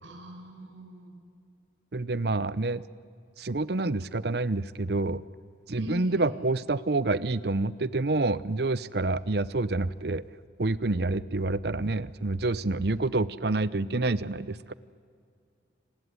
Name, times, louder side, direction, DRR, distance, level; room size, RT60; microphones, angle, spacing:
voice 1, 0.0-1.1 5.7-6.3, left 2 dB, 90° right, 5 dB, 5.3 m, -42 dB
voice 2, 1.9-2.8 3.4-5.2 5.7-10.2 10.6-14.7, right 2 dB, 55° right, 18 dB, 0.8 m, -28 dB
29.5 x 20.0 x 9.7 m, 2.2 s
head